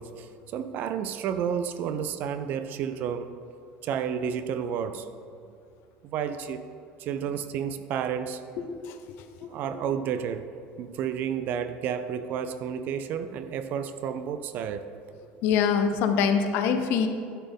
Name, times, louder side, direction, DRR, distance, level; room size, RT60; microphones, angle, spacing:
voice 1, 0.0-3.4 3.8-5.1 6.0-6.7 7.0-8.4 9.4-10.5 10.8-14.9, right 8 dB, 45° right, 11 dB, 0.4 m, -31 dB
voice 2, 8.7-9.0 9.4-9.5 15.4-17.1, left 6 dB, 55° left, 8 dB, 0.7 m, -24 dB
11.0 x 4.3 x 5.3 m, 2.5 s
cardioid pair, 155°, 4 cm